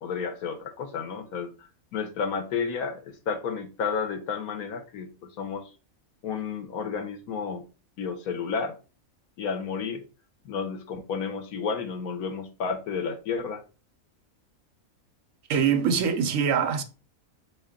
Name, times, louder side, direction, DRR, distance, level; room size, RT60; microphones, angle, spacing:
voice 1, 0.0-1.5 1.9-5.7 6.2-7.6 8.0-8.7 9.4-10.0 10.4-13.6, left 5 dB, 90° left, 1.2 m, -31 dB
voice 2, 15.5-16.8, right 7 dB, 70° right, 1.1 m, -23 dB
4.6 x 2.9 x 3.6 m
omnidirectional pair, 1.5 m